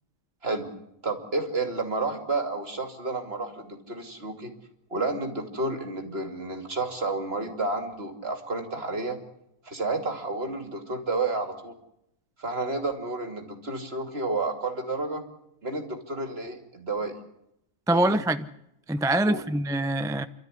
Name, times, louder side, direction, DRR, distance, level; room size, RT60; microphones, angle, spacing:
voice 1, 1.0-4.5 4.9-9.2 9.6-11.7 12.4-15.2 15.6-17.2 17.9-18.2 19.2-19.4, right 3 dB, 45° right, 3.0 m, -31 dB
voice 2, 17.9-18.5 18.9-20.3, right 1 dB, 5° right, 0.4 m, -24 dB
28.5 x 13.0 x 9.9 m
omnidirectional pair, 1.5 m